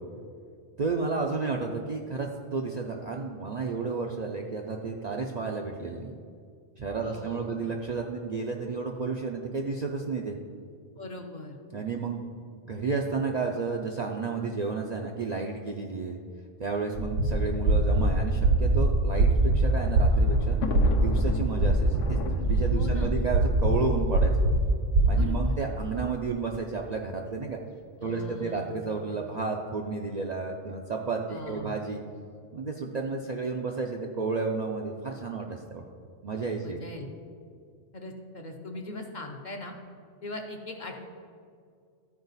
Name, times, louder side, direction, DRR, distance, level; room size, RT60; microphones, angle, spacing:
voice 1, 0.8-6.2 6.8-10.4 11.7-12.3 12.6-16.2 16.6-20.6 20.9-24.3 25.1-27.6 28.0-32.0 32.5-35.8 36.2-36.8, right 4 dB, 50° right, 0 dB, 0.5 m, -32 dB
voice 2, 7.0-7.5 11.0-11.6 22.7-23.2 25.1-25.5 28.0-28.8 31.3-31.8 36.6-37.1 37.9-39.7 40.2-41.0, left 2 dB, 45° left, 2 dB, 0.7 m, -40 dB
sound 1, 16.9-25.1, right 2 dB, 85° right, 1.6 m, -23 dB
Thunder, 19.3-24.5 25.3-25.4 25.6-25.7 26.8-27.1, left 6 dB, 85° left, 1.0 m, -38 dB
13.0 x 4.8 x 4.0 m, 2.2 s
omnidirectional pair, 1.2 m